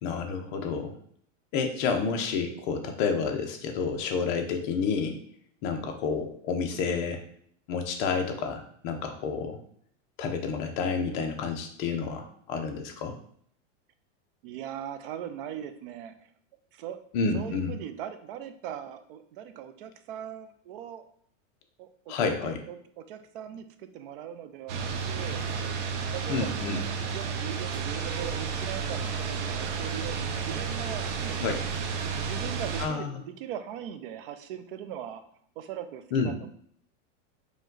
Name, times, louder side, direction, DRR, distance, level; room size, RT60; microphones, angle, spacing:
voice 1, 0.0-1.0 1.5-5.2 5.6-7.2 7.7-9.6 10.2-13.1 17.1-17.8 22.1-22.6 26.3-26.8 31.4-31.6 32.8-33.1 36.1-36.5, left 5 dB, 40° left, 4 dB, 0.6 m, -29 dB
voice 2, 14.4-16.3 16.7-17.0 17.3-21.0 21.8-25.4 26.1-26.8 27.1-31.5 32.0-35.2 35.6-36.5, right 10 dB, 45° right, 9 dB, 0.4 m, -40 dB
sound 1, 24.7-32.9, right 5 dB, 65° right, 0.8 m, -32 dB
5.0 x 2.3 x 3.8 m, 0.63 s
supercardioid pair, 160°, 38 cm